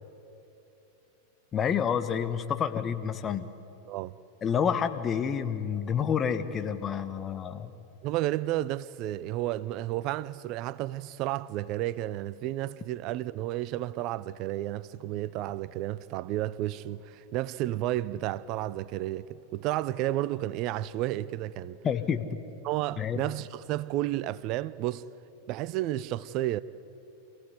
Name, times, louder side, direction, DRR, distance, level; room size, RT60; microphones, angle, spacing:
voice 1, 1.5-3.5 4.4-7.7 21.8-22.3 23.0-23.2, left 7 dB, 25° left, 1.2 m, -29 dB
voice 2, 8.0-21.8 22.6-25.1 25.5-26.6, right 14 dB, 40° right, 0.6 m, -32 dB
26.5 x 16.5 x 9.7 m
figure-of-eight pair, 90°, 0 cm